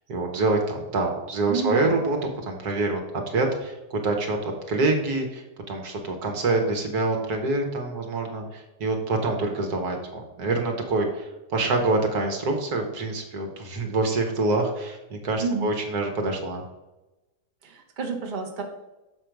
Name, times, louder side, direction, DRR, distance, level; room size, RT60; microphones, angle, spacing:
voice 1, 0.1-2.2 2.4-16.6, right 2 dB, 70° right, 3 dB, 1.6 m, -26 dB
voice 2, 1.5-2.0 15.4-15.7 17.6-18.6, right 5 dB, 35° right, 1 dB, 1.0 m, -29 dB
6.9 x 5.1 x 4.6 m, 1.0 s
omnidirectional pair, 1.7 m